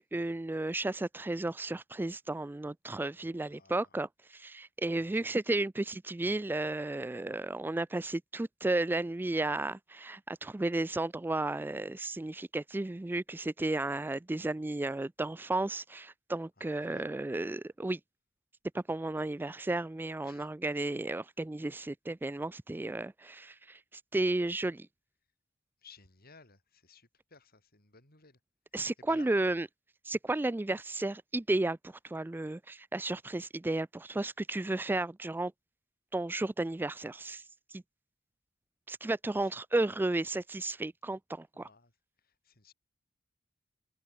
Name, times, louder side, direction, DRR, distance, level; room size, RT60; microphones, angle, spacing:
voice 1, 0.0-18.0 18.7-24.9 28.7-29.7 30.0-35.5 36.1-37.8 38.9-41.7, right 2 dB, 10° right, 0.3 m, -33 dB
voice 2, 3.2-3.9 5.2-5.3 16.6-17.1 20.2-20.5 25.8-28.4 29.0-29.4 39.4-39.5 41.5-41.9 42.2-42.7, left 4 dB, 50° left, 7.2 m, -57 dB
head